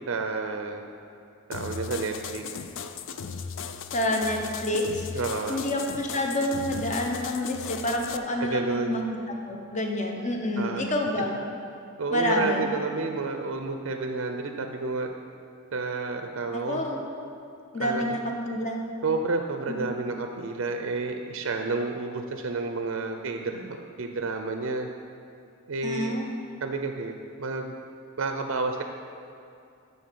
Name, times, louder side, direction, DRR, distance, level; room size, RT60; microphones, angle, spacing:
voice 1, 0.1-0.9 1.5-2.4 5.1-5.6 8.4-9.0 10.6-10.9 12.0-15.1 15.7-16.8 17.8-18.2 19.0-24.9 25.7-26.2 26.6-27.7 28.2-28.8, right 3 dB, 60° right, 5 dB, 0.5 m, -30 dB
sound 1, 1.5-8.2, left 6 dB, 60° left, 0.4 m, -37 dB
voice 2, 3.9-5.1 5.5-9.0 9.5-11.4 12.1-12.7 16.5-17.0 17.7-18.2 18.4-18.8 19.7-19.8 25.8-26.3, left 1 dB, 35° left, 1 dB, 0.9 m, -28 dB
9.5 x 4.0 x 6.7 m, 2.5 s
head